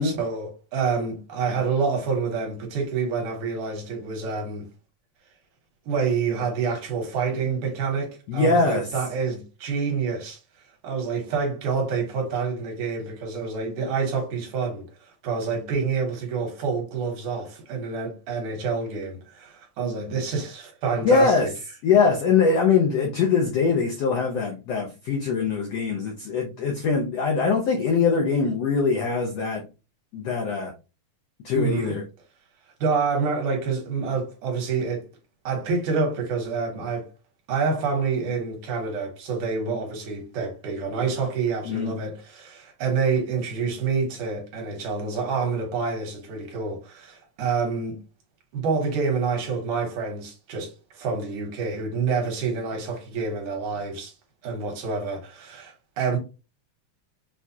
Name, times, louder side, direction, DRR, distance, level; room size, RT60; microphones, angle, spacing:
voice 1, 0.0-4.6 5.9-10.4 10.8-21.5 31.5-32.0 32.8-35.0 35.4-37.1 37.5-48.0 48.5-54.1 54.4-56.2, right 5 dB, 70° right, 2.6 m, -27 dB
voice 2, 8.3-8.9 21.0-21.5 21.8-29.6 30.1-30.7 31.4-32.0 41.6-42.0, left 5 dB, 80° left, 1.4 m, -22 dB
6.4 x 2.4 x 2.7 m
omnidirectional pair, 3.9 m